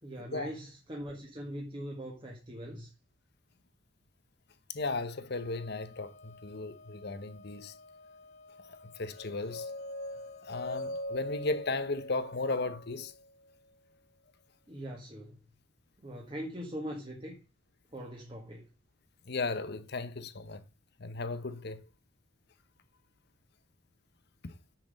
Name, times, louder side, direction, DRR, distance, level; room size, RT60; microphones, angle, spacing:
voice 1, 0.0-2.9 14.7-15.4 16.0-17.4 17.9-18.7, equal, 25° right, 1.5 m, -41 dB
voice 2, 4.7-7.7 9.0-9.7 10.4-13.1 19.3-20.6 21.0-21.8 24.4-24.5, left 3 dB, 50° left, 0.9 m, -35 dB
Wind instrument woodwind instrument, 5.3-12.0, left 3 dB, 35° left, 1.3 m, -55 dB
sound 1, 9.2-13.3, left 1 dB, 85° left, 1.3 m, -41 dB
7.4 x 6.0 x 6.3 m
head